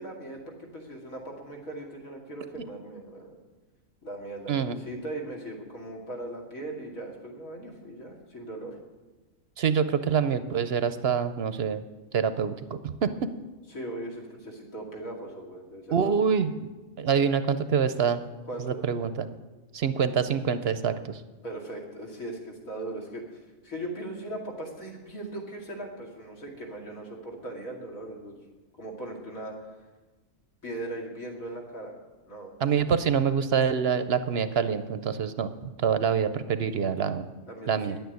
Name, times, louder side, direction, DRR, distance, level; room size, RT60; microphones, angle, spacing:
voice 1, 0.0-3.3 4.0-8.7 13.7-16.1 18.5-18.8 21.4-23.4 23.6-28.4 28.8-29.7 30.6-31.9 32.3-32.5 37.4-38.0, right 1 dB, 75° left, -1 dB, 2.9 m, -39 dB
voice 2, 9.6-11.8 12.1-13.3 15.9-16.5 17.0-18.2 18.6-19.3 19.7-21.2 32.6-37.3 37.7-38.0, right 7 dB, 55° right, 11 dB, 0.8 m, -26 dB
10.5 x 9.1 x 9.3 m, 1.2 s
omnidirectional pair, 1.4 m